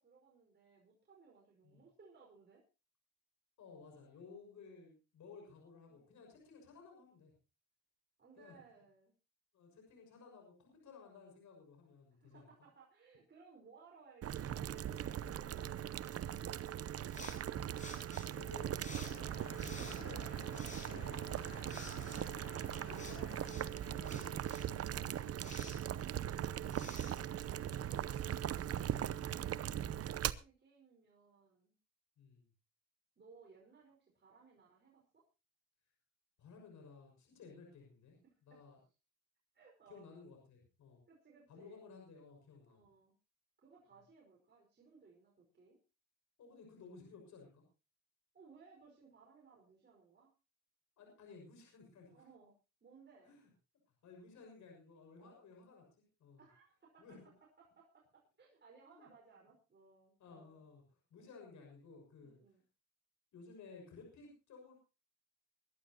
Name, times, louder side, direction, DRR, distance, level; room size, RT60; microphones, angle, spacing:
voice 1, 0.0-2.6 5.9-6.2 8.2-9.1 12.2-16.8 29.1-31.7 33.2-35.2 38.2-38.6 39.5-40.1 41.1-41.8 42.7-43.1 43.6-45.8 48.3-50.3 52.1-52.5 52.8-53.4 55.2-55.5 56.4-60.6 61.2-61.3 62.2-62.6, right 4 dB, 35° right, -2 dB, 5.1 m, -63 dB
voice 2, 3.6-7.3 8.4-8.6 9.5-12.5 15.2-15.3 17.5-18.7 19.4-22.5 22.9-25.3 26.5-28.5 32.2-32.4 36.4-38.2 38.4-38.8 39.9-41.0 41.5-42.8 46.4-47.6 51.0-52.3 53.2-53.5 54.0-55.9 56.2-56.4 57.0-57.3 58.9-59.1 60.2-62.4 63.3-64.7, left 4 dB, 70° left, 1 dB, 6.3 m, -57 dB
Boiling, 14.2-30.3, right 10 dB, 50° right, 0.8 m, -40 dB
sound 1, 17.1-28.0, left 2 dB, 25° left, 7.0 m, -54 dB
sound 2, 19.0-24.0, left 3 dB, 50° left, 7.1 m, -53 dB
23.5 x 11.5 x 2.9 m, 0.31 s
cardioid pair, 90°, 30 cm